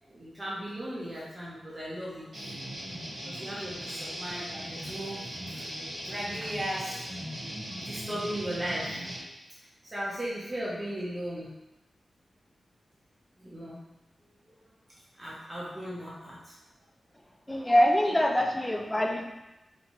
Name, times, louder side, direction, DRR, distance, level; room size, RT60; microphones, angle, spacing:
voice 1, 0.0-2.2 3.2-5.6 6.0-7.0 7.8-8.9 9.8-11.5 13.4-13.8 15.2-16.5 18.0-18.1, right 1 dB, 25° right, -7 dB, 0.7 m, -36 dB
sound 1, 2.3-9.2, equal, 75° right, 1.2 m, -39 dB
voice 2, 17.5-19.2, equal, 10° left, 2 dB, 0.4 m, -24 dB
2.8 x 2.2 x 2.9 m, 0.98 s
wide cardioid pair, 80°, 0 cm